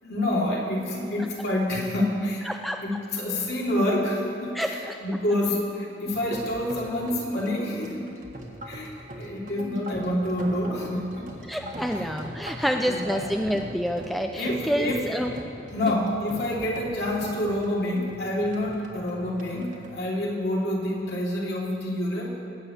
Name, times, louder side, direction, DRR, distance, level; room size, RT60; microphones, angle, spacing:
voice 1, 0.0-2.4 2.8-8.1 8.7-11.3 11.8-12.1 12.8-13.3 14.4-15.0 15.7-22.4, left 1 dB, 60° left, -3 dB, 2.9 m, -28 dB
voice 2, 2.5-2.8 4.5-5.0 11.5-15.3 15.9-16.0, equal, ahead, 4 dB, 0.4 m, -28 dB
sound 1, 6.1-21.0, right 1 dB, 45° right, 1.6 m, -41 dB
20.0 x 6.9 x 8.5 m, 2.9 s
head